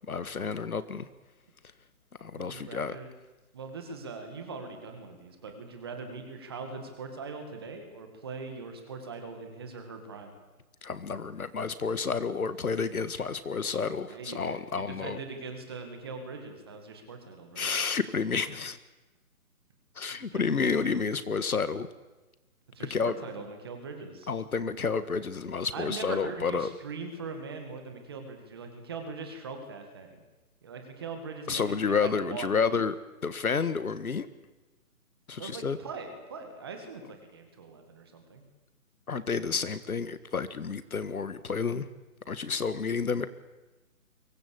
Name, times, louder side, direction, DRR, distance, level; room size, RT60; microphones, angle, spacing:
voice 1, 0.1-1.1 2.2-3.0 10.8-15.2 17.6-18.8 20.0-21.9 22.9-23.1 24.3-26.7 31.5-32.9 33.2-34.3 35.3-35.8 39.1-41.9 42.3-43.3, left 5 dB, 70° left, 13 dB, 1.8 m, -30 dB
voice 2, 2.3-3.1 3.5-10.3 14.1-17.7 20.1-20.7 22.7-24.3 25.7-30.1 30.6-32.6 35.4-38.4, right 4 dB, 15° right, 5 dB, 2.0 m, -41 dB
23.0 x 19.0 x 8.5 m, 1.2 s
hypercardioid pair, 175°, 44 cm